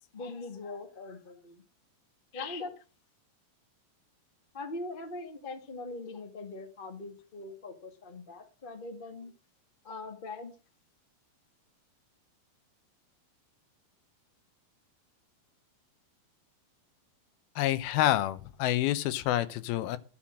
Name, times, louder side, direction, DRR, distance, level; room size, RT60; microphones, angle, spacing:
voice 1, 0.1-1.6 2.3-2.7 4.5-9.3 9.8-10.5, left 3 dB, 50° left, 6 dB, 0.6 m, -41 dB
voice 2, 17.6-20.0, left 13 dB, 80° left, 14 dB, 2.7 m, -28 dB
13.0 x 5.7 x 7.6 m, 0.36 s
omnidirectional pair, 4.4 m